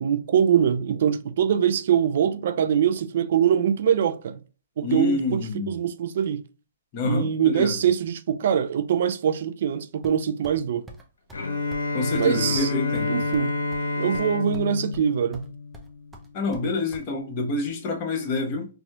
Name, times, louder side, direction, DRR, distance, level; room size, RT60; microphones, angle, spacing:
voice 1, 0.0-4.4 4.8-6.4 7.0-10.8 12.2-12.7 13.1-13.5 14.0-15.5, right 8 dB, 60° right, 0.3 m, -23 dB
voice 2, 4.8-5.7 6.9-7.8 11.9-13.2 16.3-18.7, left 3 dB, 40° left, 1.1 m, -27 dB
sound 1, 10.0-10.6 10.9-11.0 11.3-11.4 11.7-11.9 12.1-12.3 12.5-13.9 14.1-14.7 14.9-15.5 15.7-17.0, right 1 dB, 5° right, 0.7 m, -45 dB
Bowed string instrument, 11.3-16.3, left 3 dB, 80° left, 0.8 m, -29 dB
4.1 x 2.7 x 2.4 m
hypercardioid pair, 130°, 0 cm